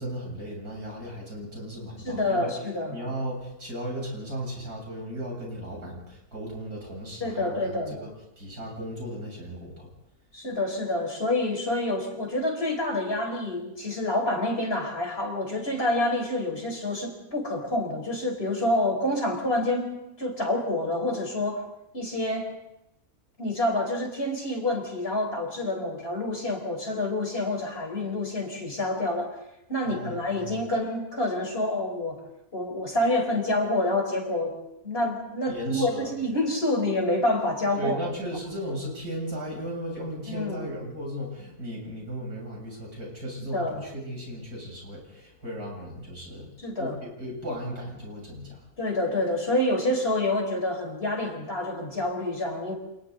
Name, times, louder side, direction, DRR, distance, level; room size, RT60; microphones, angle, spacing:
voice 1, 0.0-2.5 2.9-8.1 8.4-9.9 29.8-30.6 35.5-36.1 37.8-46.5 46.8-48.6, equal, 80° right, -2 dB, 8.4 m, -36 dB
voice 2, 2.0-3.0 7.2-8.0 10.3-21.6 21.9-22.6 23.4-29.4 29.7-32.2 32.5-34.5 34.8-38.0 40.3-40.7 43.5-43.8 46.6-46.9 48.8-52.7, left 1 dB, 40° left, 2 dB, 4.9 m, -27 dB
30.0 x 27.5 x 4.1 m, 0.86 s
omnidirectional pair, 1.6 m